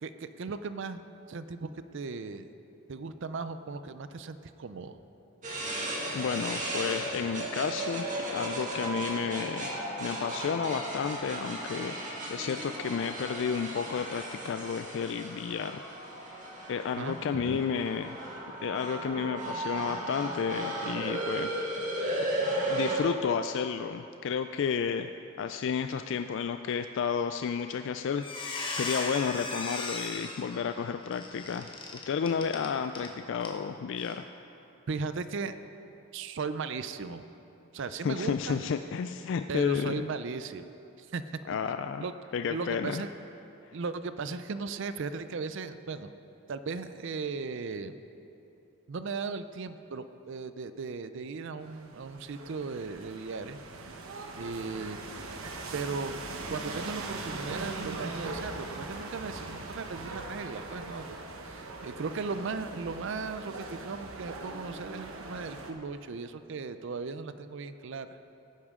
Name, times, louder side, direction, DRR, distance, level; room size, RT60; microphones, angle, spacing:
voice 1, 0.0-2.5 2.9-5.0 17.0-17.6 34.9-35.5 36.1-37.3 37.7-38.6 39.5-40.7 41.0-41.2 42.0-42.1 42.5-43.1 43.7-46.1 46.5-48.0 48.9-53.9 54.3-55.1 55.7-56.2 56.5-61.2 61.4-68.2, right 4 dB, 55° right, 11 dB, 0.4 m, -37 dB
sound 1, 5.4-23.0, right 1 dB, 35° right, 1.9 m, -35 dB
voice 2, 6.1-9.7 10.0-15.9 16.7-18.2 18.6-21.5 22.4-25.1 25.4-34.2 38.0-40.1 41.5-42.0 42.3-43.0, left 6 dB, 55° left, 8 dB, 0.3 m, -32 dB
Squeak, 27.6-27.8 28.1-33.1 33.4-33.6 34.0-34.1, left 3 dB, 25° left, 1.0 m, -37 dB
sound 2, 51.6-65.7, right 3 dB, 70° right, 1.0 m, -40 dB
17.5 x 9.7 x 3.7 m, 2.9 s
head